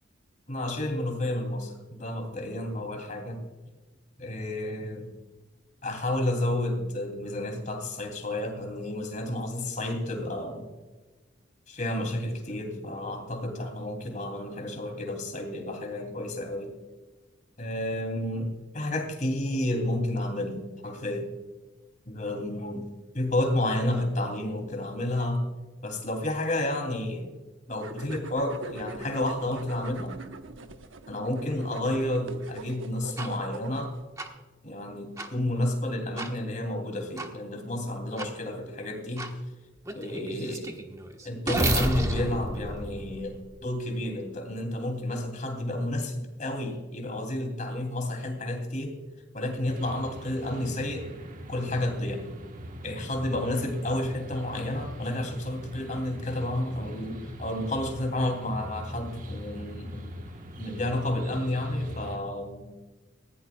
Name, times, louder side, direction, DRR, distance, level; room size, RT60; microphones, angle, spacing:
voice 1, 0.5-3.4 4.2-5.1 5.8-10.7 11.7-16.7 17.6-21.3 22.1-22.9 23.1-25.5 25.8-27.3 27.7-30.1 31.1-33.9 34.6-39.4 39.9-40.7 41.2-49.0 49.3-51.1 51.5-52.3 52.8-60.2 60.6-62.7, left 1 dB, 40° left, 3 dB, 2.9 m, -31 dB
sound 1, 27.8-34.0, right 2 dB, 85° right, 1.0 m, -44 dB
sound 2, 33.2-33.3 34.2-34.3 35.2-35.3 36.2-36.3 37.2-37.3 38.2-38.3 39.2-39.3 39.9-43.7, right 1 dB, 15° right, 1.2 m, -31 dB
sound 3, 49.7-62.2, equal, 40° right, 1.2 m, -42 dB
19.5 x 15.5 x 2.3 m, 1.2 s
head